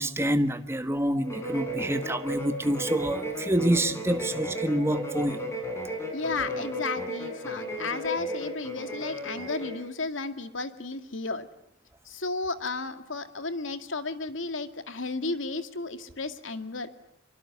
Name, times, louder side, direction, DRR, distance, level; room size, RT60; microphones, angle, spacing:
voice 1, 0.0-5.4, right 1 dB, 15° right, 1.4 m, -27 dB
sound 1, 1.2-9.8, equal, 15° left, 7.2 m, -34 dB
voice 2, 6.1-11.5 12.0-16.9, left 3 dB, 80° left, 2.2 m, -33 dB
25.5 x 23.5 x 9.5 m
head